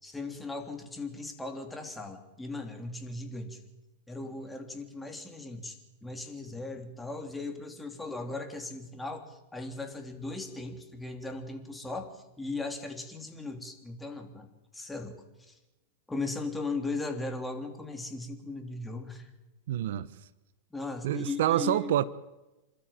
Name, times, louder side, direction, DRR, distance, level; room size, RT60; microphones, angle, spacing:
voice 1, 0.0-3.6 4.1-15.5 16.1-19.3 20.7-21.9, left 3 dB, 10° left, 3.1 m, -38 dB
voice 2, 19.7-20.1 21.0-22.1, right 12 dB, 70° right, 0.8 m, -27 dB
28.0 x 13.0 x 8.9 m
hypercardioid pair, 130°, 0 cm